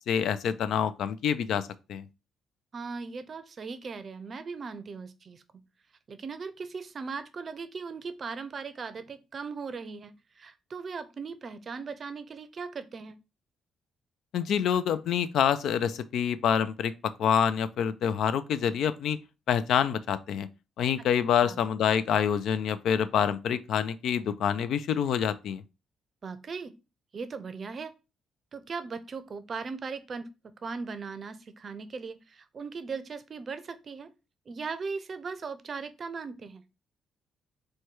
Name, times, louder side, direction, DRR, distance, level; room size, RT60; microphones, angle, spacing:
voice 1, 0.1-2.1 14.3-19.2 19.5-20.5 20.8-25.6, left 8 dB, 75° left, 0.3 m, -27 dB
voice 2, 2.7-5.4 6.1-13.2 21.4-21.6 26.2-26.7 27.1-27.9 28.5-30.3 30.6-34.1 34.5-36.6, right 5 dB, 45° right, 0.5 m, -38 dB
4.6 x 2.2 x 4.5 m
cardioid pair, 90°, 0 cm